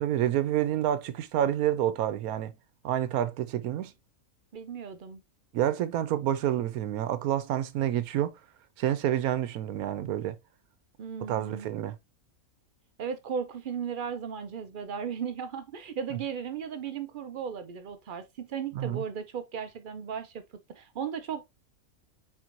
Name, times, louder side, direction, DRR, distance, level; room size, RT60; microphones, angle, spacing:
voice 1, 0.0-2.5 2.8-3.9 5.5-8.3 8.8-10.4 11.3-12.0 18.7-19.0, right 11 dB, 90° right, 1.1 m, -28 dB
voice 2, 4.5-5.2 11.0-11.7 13.0-20.4 20.7-21.4, right 7 dB, 65° right, 0.5 m, -36 dB
4.5 x 4.3 x 2.5 m
omnidirectional pair, 1.5 m